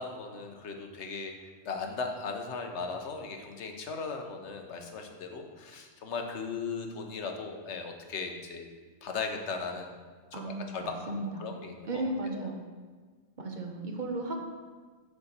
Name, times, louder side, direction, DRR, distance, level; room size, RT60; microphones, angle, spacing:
voice 1, 0.0-8.6 9.0-10.0 10.3-11.1 11.4-12.5, left 4 dB, 80° left, 4 dB, 1.2 m, -38 dB
voice 2, 10.3-11.5 11.8-12.6 13.4-14.4, right 2 dB, 45° right, 2 dB, 1.0 m, -35 dB
6.8 x 4.2 x 6.6 m, 1.5 s
omnidirectional pair, 1.2 m